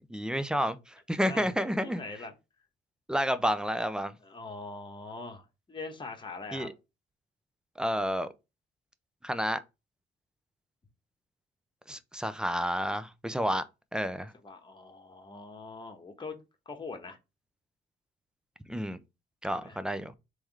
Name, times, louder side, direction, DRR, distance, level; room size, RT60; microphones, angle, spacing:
voice 1, 0.1-2.0 3.1-4.1 6.5-6.7 7.8-8.3 9.2-9.6 11.9-13.6 13.9-14.3 18.7-19.0 19.4-20.1, equal, 5° right, 0.5 m, -30 dB
voice 2, 1.8-2.3 4.2-6.7 14.4-16.3 16.7-17.2 19.5-19.8, left 3 dB, 25° left, 1.1 m, -42 dB
3.6 x 3.2 x 4.6 m
cardioid pair, 90°, 20 cm